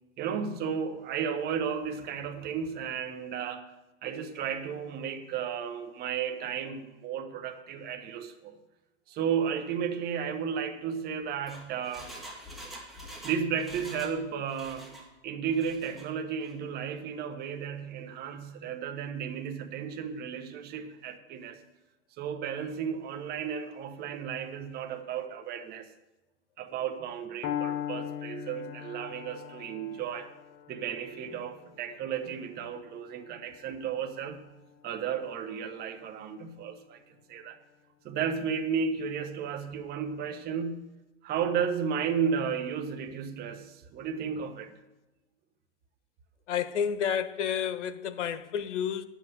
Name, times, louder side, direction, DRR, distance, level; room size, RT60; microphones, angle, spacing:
voice 1, 0.2-3.7 4.0-8.6 9.1-12.1 12.7-12.8 13.2-15.0 15.2-21.6 22.2-25.9 26.6-30.3 30.7-34.4 34.8-37.6 38.0-40.9 41.2-44.7, right 7 dB, 25° right, 1.3 m, -33 dB
Engine, 11.2-14.2 14.5-15.1 15.5-16.1 16.4-16.5, equal, ahead, 2.3 m, -46 dB
Piano, 27.4-35.4, left 10 dB, 30° left, 0.6 m, -40 dB
voice 2, 46.5-49.0, left 8 dB, 85° left, 1.2 m, -30 dB
11.0 x 8.1 x 8.0 m
supercardioid pair, 145°, 35 cm